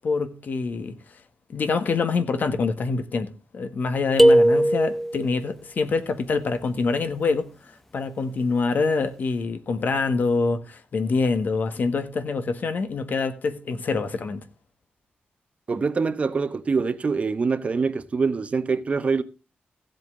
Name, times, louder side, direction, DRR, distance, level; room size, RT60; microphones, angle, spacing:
voice 1, 0.0-1.0 1.5-7.5 7.9-14.4, left 4 dB, 55° left, 1.5 m, -25 dB
sound 1, 4.2-5.3, right 1 dB, 5° left, 0.7 m, -17 dB
voice 2, 15.7-19.2, right 4 dB, 35° right, 0.9 m, -24 dB
16.0 x 7.9 x 3.7 m
wide cardioid pair, 130°, 4 cm